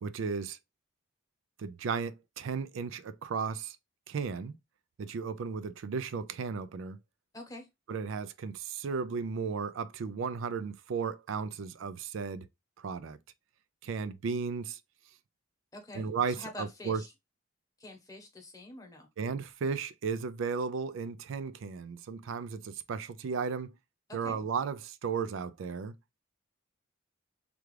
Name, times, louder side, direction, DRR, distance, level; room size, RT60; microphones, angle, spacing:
voice 1, 0.0-0.6 1.6-3.8 4.1-4.5 5.0-7.0 7.9-12.5 12.8-13.2 13.8-14.8 15.9-17.0 19.2-23.7 24.1-26.0, right 5 dB, 80° right, 0.4 m, -35 dB
voice 2, 7.3-7.7 15.7-16.1 16.4-17.1 17.8-19.1 24.1-24.4, left 1 dB, 20° left, 0.9 m, -46 dB
3.4 x 2.4 x 3.1 m
head